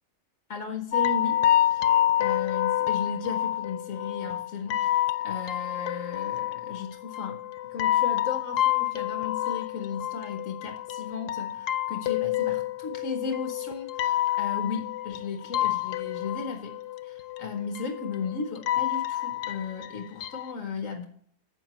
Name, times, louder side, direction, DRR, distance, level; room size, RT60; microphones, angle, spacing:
voice 1, 0.5-1.4 1.7-1.9 2.2-7.4 7.7-16.8 17.0-21.1, left 5 dB, 60° left, 5 dB, 1.3 m, -35 dB
sound 1, 0.9-20.5, left 12 dB, 85° left, 1.2 m, -28 dB
12.5 x 8.2 x 3.0 m, 0.63 s
omnidirectional pair, 1.7 m